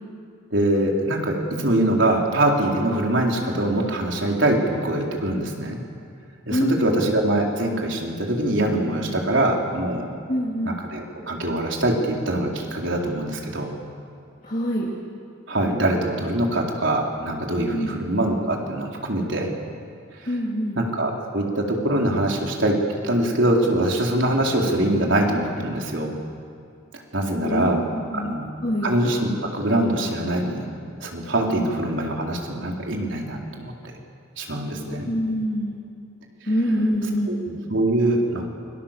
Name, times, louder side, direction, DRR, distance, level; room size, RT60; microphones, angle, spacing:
voice 1, 0.5-5.8 6.5-10.1 10.6-13.7 15.5-19.5 20.8-22.8 23.0-26.1 27.1-27.8 28.1-28.4 28.8-30.7 31.0-33.7 34.4-35.1 37.3-38.5, right 1 dB, 65° right, 0 dB, 4.2 m, -23 dB
voice 2, 6.5-7.0 10.3-10.8 14.4-14.9 17.7-17.9 20.3-20.8 27.4-28.9 31.5-31.6 34.9-35.8 36.5-37.4, equal, 40° left, -3 dB, 2.9 m, -25 dB
28.5 x 24.0 x 7.5 m, 2.4 s
head